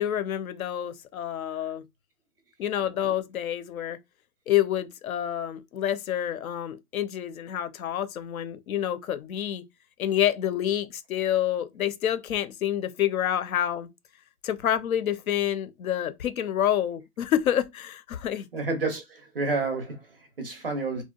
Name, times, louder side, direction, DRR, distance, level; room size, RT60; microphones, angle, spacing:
voice 1, 0.0-1.8 2.6-4.0 4.5-9.6 10.0-13.9 14.4-18.5 20.9-21.0, left 11 dB, 65° left, 0.5 m, -28 dB
voice 2, 18.5-21.0, right 3 dB, 40° right, 0.4 m, -30 dB
2.7 x 2.1 x 2.2 m
hypercardioid pair, 170°, 47 cm